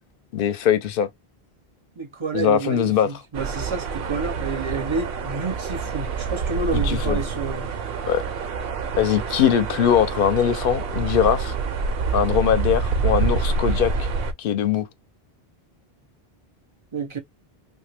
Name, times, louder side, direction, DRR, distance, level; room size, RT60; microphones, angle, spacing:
voice 1, 0.3-1.1 2.3-3.1 6.7-7.2 8.1-8.2 9.0-11.5 12.1-14.1 14.4-14.9, left 9 dB, 65° left, 0.7 m, -21 dB
voice 2, 2.0-7.7 16.9-17.2, right 4 dB, 35° right, 0.5 m, -29 dB
sound 1, 3.3-14.3, right 4 dB, 70° right, 0.8 m, -27 dB
2.9 x 2.2 x 3.2 m
omnidirectional pair, 1.0 m